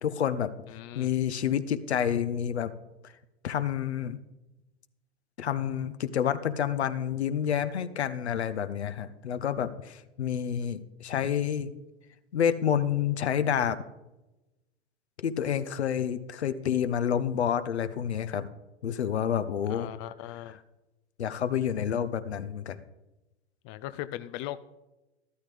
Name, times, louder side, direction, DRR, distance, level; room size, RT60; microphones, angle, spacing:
voice 1, 0.0-0.5 0.9-2.7 3.0-3.1 3.4-4.2 5.4-11.7 12.3-13.8 15.2-18.5 18.8-19.9 21.2-22.8, left 9 dB, 70° left, 13 dB, 0.9 m, -29 dB
voice 2, 0.7-1.1 19.7-20.6 23.6-24.6, left 14 dB, 25° left, 13 dB, 0.4 m, -39 dB
13.0 x 13.0 x 3.4 m, 1.0 s
figure-of-eight pair, 95°, 34 cm